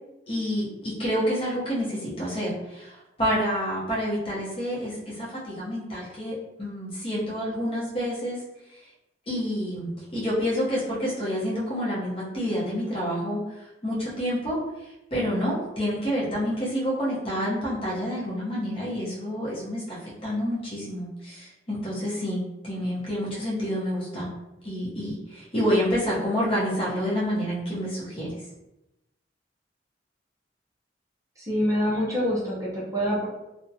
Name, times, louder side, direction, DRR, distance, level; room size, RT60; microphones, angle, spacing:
voice 1, 0.3-8.4 9.3-24.3 24.6-28.3, equal, 30° left, -7 dB, 0.8 m, -28 dB
voice 2, 31.4-33.3, equal, 20° right, -6 dB, 0.5 m, -26 dB
2.5 x 2.1 x 2.7 m, 0.92 s
head